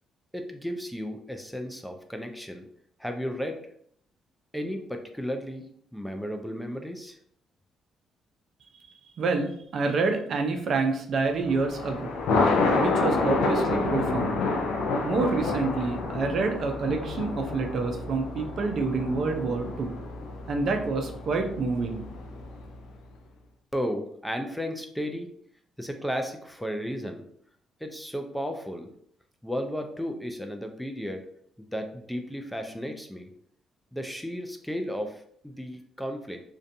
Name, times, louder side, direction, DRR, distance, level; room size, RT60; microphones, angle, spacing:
voice 1, 0.3-2.6 3.0-3.6 4.5-5.7 5.9-7.2 23.7-25.3 25.8-27.2 27.8-28.9 29.4-31.3 31.6-33.3 33.9-36.4, equal, ahead, 5 dB, 0.4 m, -34 dB
voice 2, 9.2-12.1 12.7-14.4 15.0-19.9 20.5-22.0, right 4 dB, 60° right, 5 dB, 0.4 m, -27 dB
Thunder, 11.4-22.8, left 3 dB, 80° left, 0.3 m, -29 dB
2.5 x 2.2 x 2.6 m, 0.64 s
supercardioid pair, 65°, 0 cm